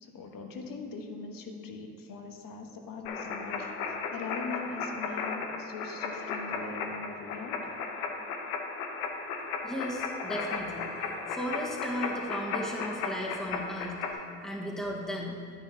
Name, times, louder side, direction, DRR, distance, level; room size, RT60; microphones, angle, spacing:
voice 1, 0.0-7.6, left 4 dB, 50° left, 4 dB, 1.3 m, -41 dB
sound 1, 3.1-14.1, left 5 dB, 90° left, 0.9 m, -35 dB
voice 2, 9.6-10.8 11.3-15.4, equal, ahead, -3 dB, 1.5 m, -35 dB
10.5 x 9.6 x 2.8 m, 2.4 s
hypercardioid pair, 70°, 42 cm